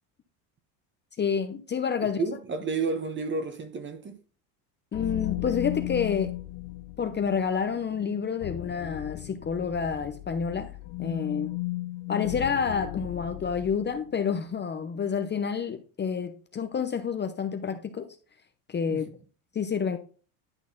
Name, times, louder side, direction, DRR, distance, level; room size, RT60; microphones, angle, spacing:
voice 1, 1.2-2.2 4.9-6.3 7.0-11.5 12.1-18.1 18.7-19.1 19.5-20.0, left 6 dB, 25° left, 0.8 m, -29 dB
voice 2, 2.0-4.2 18.9-19.0, right 4 dB, 25° right, 1.2 m, -31 dB
sound 1, 4.9-14.1, left 19 dB, 75° left, 0.8 m, -36 dB
11.0 x 4.0 x 3.8 m
supercardioid pair, 110°, 45 cm